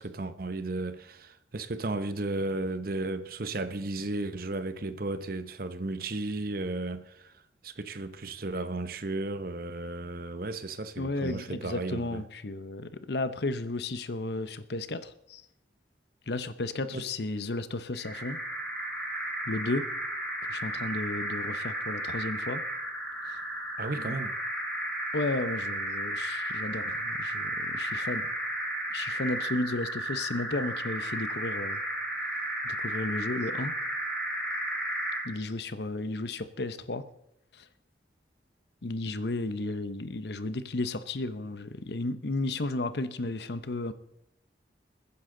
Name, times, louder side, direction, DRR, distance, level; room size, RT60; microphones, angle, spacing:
voice 1, 0.0-7.3 7.6-12.2 16.9-17.0 23.8-24.3, right 2 dB, 55° right, 0.9 m, -34 dB
voice 2, 11.0-15.4 16.3-18.4 19.5-19.9 20.4-22.6 23.3-23.4 24.1-24.2 25.1-28.3 28.9-31.8 32.6-33.7 35.2-37.0 37.5-37.7 38.8-43.9, left 2 dB, 65° left, 0.8 m, -33 dB
sound 1, 17.9-35.4, right 1 dB, 5° left, 4.5 m, -33 dB
21.5 x 9.7 x 3.9 m
head